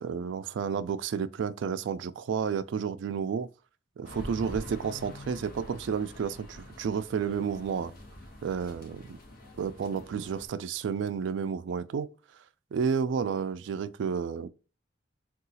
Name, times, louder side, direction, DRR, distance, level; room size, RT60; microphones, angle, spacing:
voice 1, 0.0-3.5 4.0-7.9 8.4-9.2 9.6-12.1 12.7-14.5, right 6 dB, 75° right, 0.3 m, -31 dB
sound 1, 4.0-10.5, left 1 dB, 50° left, 0.9 m, -46 dB
3.7 x 2.4 x 2.6 m
head